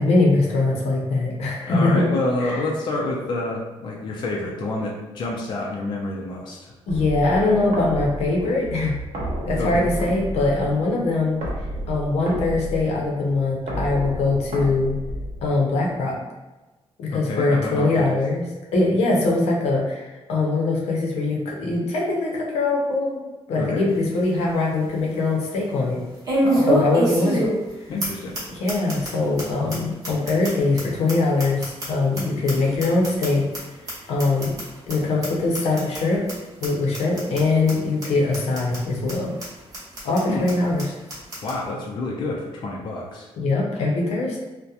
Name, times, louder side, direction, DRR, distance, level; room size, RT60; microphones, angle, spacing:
voice 1, 0.0-2.0 2.4-2.6 6.9-8.9 9.4-11.4 11.9-15.0 15.4-16.2 17.0-18.4 18.7-23.2 23.5-26.0 26.7-27.5 28.5-33.5 34.1-34.5 34.9-39.3 40.0-40.9 43.4-44.4, left 2 dB, 85° left, -2 dB, 0.6 m, -22 dB
voice 2, 1.7-6.7 9.6-9.9 17.1-18.2 23.6-23.9 26.4-26.7 27.9-28.3 40.3-40.5 41.4-43.3, left 2 dB, 45° left, -2 dB, 0.4 m, -28 dB
sound 1, 6.9-15.8, equal, 85° right, 0.8 m, -32 dB
sound 2, 23.9-24.0 24.5-24.6 26.2-27.7 28.0-28.1 28.3-28.4 28.7-29.1 29.4-29.5 29.7-29.8 30.0-32.2 32.5-33.6 33.9-34.0 34.2-34.6 34.9-35.0 35.2-35.3 35.5-36.0 36.3-36.4 36.6-36.7 36.9-37.4 37.7-37.8 38.0-38.1 38.3-38.8 39.1-39.2 39.4-39.5 39.7-40.2 40.5-40.6 40.8-40.9 41.1-41.5, right 1 dB, 35° right, 0.9 m, -25 dB
2.7 x 2.1 x 2.4 m, 1.1 s
wide cardioid pair, 170°, 11 cm